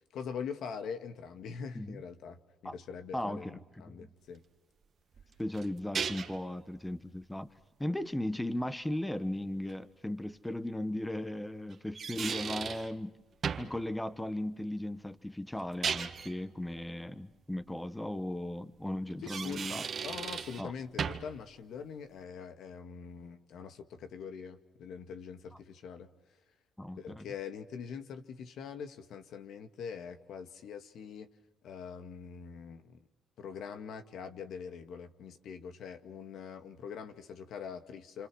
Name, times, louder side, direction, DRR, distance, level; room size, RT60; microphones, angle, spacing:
voice 1, 0.1-4.4 19.2-19.6 20.0-26.1 27.0-31.3 31.6-33.0 33.4-38.3, left 6 dB, 75° left, 8 dB, 2.0 m, -43 dB
voice 2, 3.1-4.1 5.4-7.5 7.8-13.2 13.6-19.9 20.6-20.7 26.8-27.2, left 1 dB, 5° left, 13 dB, 1.2 m, -37 dB
sound 1, 5.1-6.5 9.7-9.8 11.7-12.9 13.4-13.8 15.6-16.3 19.1-20.6 21.0-21.4, right 6 dB, 50° right, 1.8 m, -36 dB
28.5 x 26.5 x 6.3 m, 1.1 s
cardioid pair, 90°, 0 cm